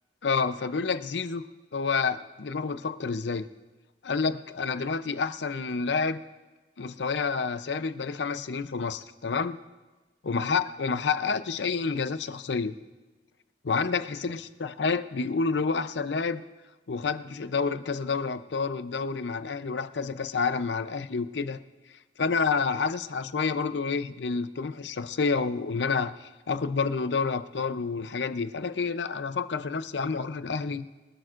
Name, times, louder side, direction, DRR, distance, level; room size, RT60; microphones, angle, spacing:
voice 1, 0.2-1.4 1.7-3.5 4.0-6.2 6.8-9.6 10.2-12.7 13.6-16.4 16.9-21.6 22.2-30.9, left 4 dB, 80° left, 12 dB, 0.6 m, -29 dB
24.5 x 12.5 x 2.5 m, 1.2 s
head